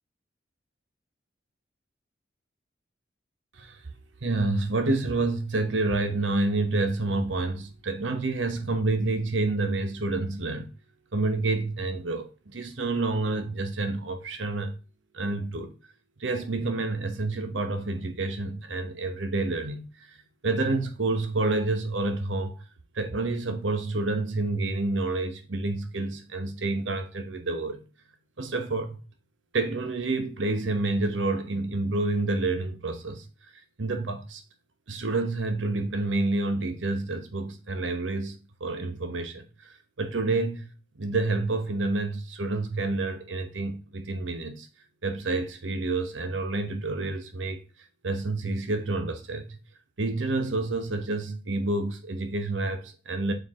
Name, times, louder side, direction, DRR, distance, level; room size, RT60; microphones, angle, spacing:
voice 1, 4.2-10.7 11.1-14.7 15.1-15.8 16.2-20.2 20.4-22.6 22.9-27.8 28.4-29.0 29.5-33.2 33.8-34.4 34.9-40.7 41.0-44.7 45.0-47.6 48.0-49.6 50.0-53.3, right 2 dB, 85° right, 1.0 m, -28 dB
6.7 x 4.6 x 3.6 m
head